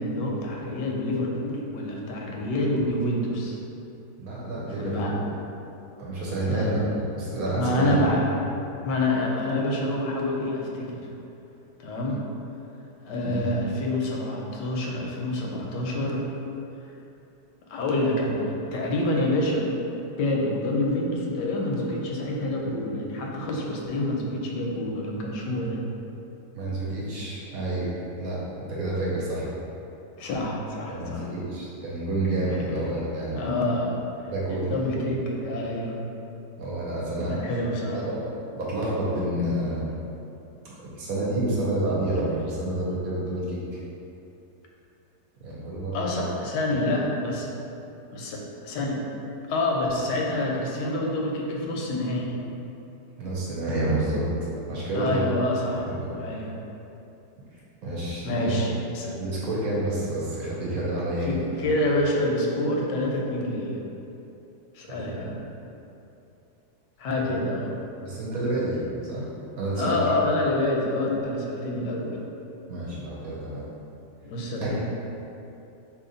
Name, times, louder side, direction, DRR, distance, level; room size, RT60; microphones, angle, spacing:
voice 1, 0.0-3.6 4.8-5.1 6.5-6.8 7.5-8.3 8.8-11.0 11.8-12.2 13.0-16.3 17.7-19.7 20.2-25.8 30.2-31.3 32.4-32.9 33.4-34.0 34.5-36.0 37.3-38.1 45.9-47.5 48.1-49.0 49.5-52.3 54.9-55.9 56.1-56.5 58.2-59.2 61.3-63.8 64.7-65.4 67.0-67.7 69.8-72.2 74.2-74.8, left 1 dB, 85° left, -1 dB, 1.2 m, -27 dB
voice 2, 4.2-5.3 6.0-6.8 7.1-8.0 13.2-13.5 26.5-27.9 28.2-29.5 30.9-33.4 34.2-34.9 36.6-37.5 37.9-39.8 40.8-43.8 45.4-46.2 53.2-54.3 54.7-55.3 55.7-56.1 57.8-58.6 59.2-61.5 64.9-65.0 65.2-65.4 67.2-67.4 68.0-69.3 69.6-70.0 72.7-73.7 74.6-74.8, right 1 dB, 65° right, -6 dB, 1.0 m, -29 dB
2.9 x 2.8 x 3.8 m, 2.8 s
omnidirectional pair, 1.8 m